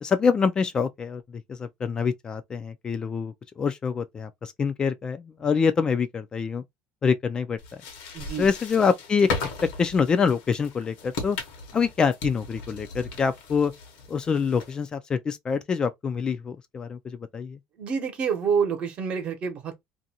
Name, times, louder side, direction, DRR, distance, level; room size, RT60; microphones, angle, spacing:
voice 1, 0.0-1.2 1.5-6.6 7.0-7.6 8.4-9.5 9.8-11.4 11.7-13.7 14.1-17.6, left 6 dB, 30° left, 0.3 m, -25 dB
sound 1, 7.6-14.9, left 4 dB, 75° left, 0.9 m, -37 dB
voice 2, 8.1-8.5 17.8-19.8, right 6 dB, 45° right, 0.9 m, -27 dB
2.6 x 2.2 x 2.8 m
supercardioid pair, 110°, 3 cm